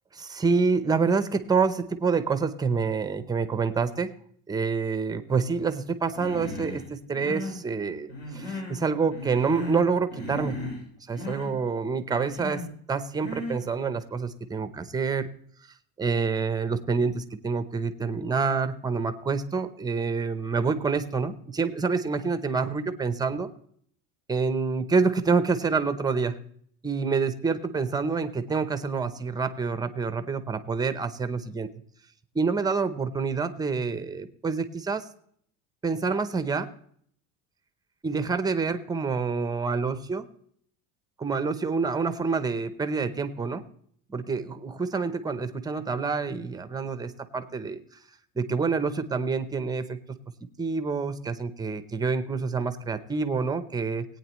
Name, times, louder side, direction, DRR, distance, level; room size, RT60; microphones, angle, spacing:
voice 1, 0.1-4.1 4.5-10.6 11.1-15.3 16.0-23.5 24.3-26.4 26.8-31.7 32.3-35.0 35.8-36.7 38.0-40.3 41.2-43.6 44.1-47.8 48.4-50.0 50.6-54.0, right 4 dB, 10° right, 11 dB, 0.7 m, -27 dB
Human voice, 6.1-6.8 7.1-7.6 8.1-8.8 9.1-9.9 10.1-10.8 11.1-11.5 12.1-12.7 13.2-13.6, left 1 dB, 65° left, 6.1 m, -36 dB
18.5 x 9.1 x 3.0 m, 0.63 s
cardioid pair, 155°, 32 cm